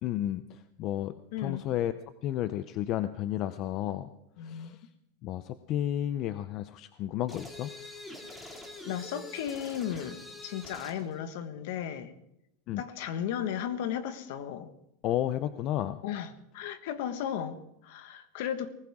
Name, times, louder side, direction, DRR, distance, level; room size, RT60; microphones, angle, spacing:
voice 1, 0.0-0.4 0.8-1.1 1.4-1.9 2.2-4.1 4.5-4.8 5.2-7.7 12.7-12.8 15.0-16.0, left 12 dB, 35° left, 0.6 m, -32 dB
voice 2, 1.3-1.6 4.4-4.8 8.9-12.1 12.8-14.7 16.0-18.7, left 9 dB, 60° left, 1.5 m, -35 dB
sound 1, 7.3-11.0, left 2 dB, 10° left, 2.4 m, -45 dB
20.0 x 19.0 x 3.7 m
supercardioid pair, 160°, 0 cm